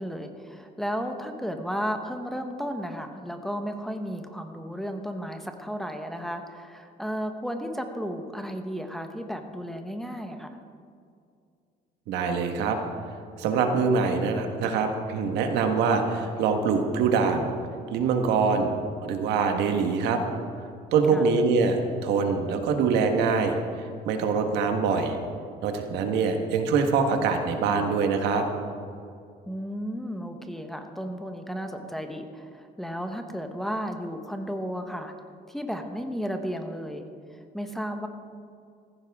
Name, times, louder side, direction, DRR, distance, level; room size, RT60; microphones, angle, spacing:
voice 1, 0.0-10.6 21.1-21.3 29.5-35.1 35.5-37.1 37.5-38.1, equal, ahead, 4 dB, 1.2 m, -33 dB
voice 2, 12.1-12.8 13.4-17.5 17.9-18.7 19.0-20.2 20.9-25.2 25.6-28.4, right 5 dB, 85° right, 4 dB, 1.5 m, -24 dB
15.0 x 15.0 x 3.6 m, 2.3 s
cardioid pair, 110°, 17 cm